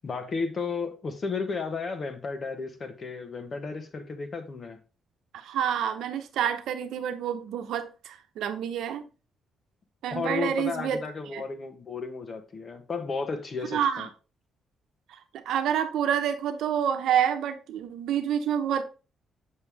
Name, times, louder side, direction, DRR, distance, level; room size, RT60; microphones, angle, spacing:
voice 1, 0.0-4.8 10.1-14.1, left 4 dB, 40° left, 1.2 m, -33 dB
voice 2, 5.3-9.0 10.0-11.0 11.3-11.4 13.7-14.1 15.1-15.2 15.5-18.8, right 9 dB, 80° right, 0.9 m, -28 dB
6.7 x 5.4 x 3.4 m
cardioid pair, 90°, 0 cm